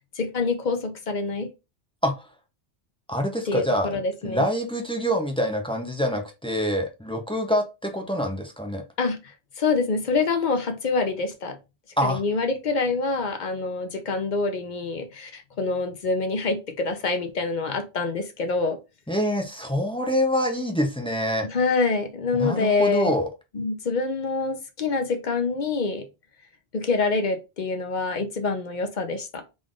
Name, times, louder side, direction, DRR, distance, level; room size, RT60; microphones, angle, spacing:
voice 1, 0.0-1.5 3.5-4.4 9.0-11.6 12.0-18.8 21.4-23.1 23.5-26.0 26.7-29.4, left 3 dB, 45° left, 0.7 m, -26 dB
voice 2, 3.1-8.8 12.0-12.2 19.1-21.5 22.3-23.3, equal, 5° left, 0.4 m, -25 dB
3.8 x 2.5 x 3.6 m
omnidirectional pair, 1.2 m